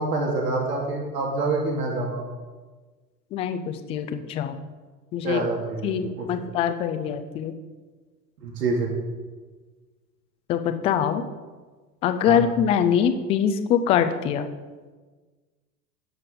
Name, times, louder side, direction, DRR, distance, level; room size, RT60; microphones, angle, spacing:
voice 1, 0.0-2.2 5.2-5.9 6.2-6.3 8.4-8.9 12.3-12.4, right 3 dB, 70° right, -1 dB, 2.5 m, -26 dB
voice 2, 3.3-4.6 5.1-5.4 5.8-7.5 10.5-11.2 12.0-14.5, left 8 dB, 15° left, 9 dB, 0.3 m, -23 dB
18.5 x 6.6 x 3.7 m, 1.4 s
figure-of-eight pair, 90°, 49 cm